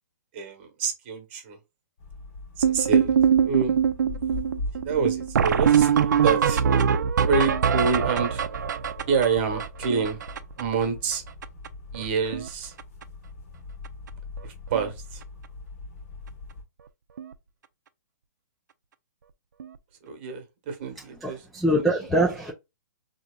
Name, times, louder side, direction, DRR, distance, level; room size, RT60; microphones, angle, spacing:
voice 1, 0.3-1.6 2.6-3.2 3.4-3.8 4.8-6.6 7.2-8.5 9.1-10.2 10.6-11.2 11.9-12.7 14.4-15.2 20.0-21.4 21.8-21.9, right 5 dB, 35° right, 1.1 m, -27 dB
sound 1, 2.0-16.6, left 3 dB, 45° left, 1.2 m, -41 dB
sound 2, 2.6-10.8 11.1-11.2 11.4-11.7 11.9-12.5 12.8-13.0 13.8-13.9 14.4-14.5 14.7-14.9 17.2-17.3 19.6-19.7, right 7 dB, 75° right, 0.5 m, -23 dB
voice 2, 21.2-22.5, right 1 dB, ahead, 0.3 m, -24 dB
3.9 x 2.9 x 2.3 m
hypercardioid pair, 165°, 10 cm